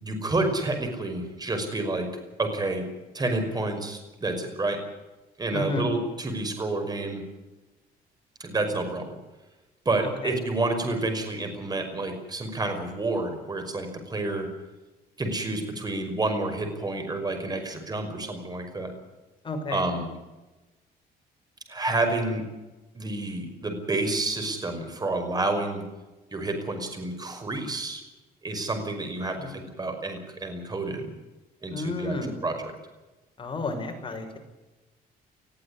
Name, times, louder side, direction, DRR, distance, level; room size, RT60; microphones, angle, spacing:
voice 1, 0.0-2.1 2.4-2.9 3.1-4.8 5.4-7.2 8.4-9.2 9.9-14.5 15.2-18.9 19.7-20.1 21.7-22.4 22.9-25.8 26.3-28.0 28.4-31.1 31.6-32.2 32.4-32.5, right 2 dB, 25° right, 6 dB, 5.6 m, -29 dB
voice 2, 5.5-5.9 10.2-10.3 19.4-19.9 29.4-29.6 31.7-32.4 33.4-34.4, left 3 dB, 30° left, 4 dB, 5.8 m, -31 dB
21.0 x 14.5 x 9.9 m, 1.1 s
cardioid pair, 115°, 17 cm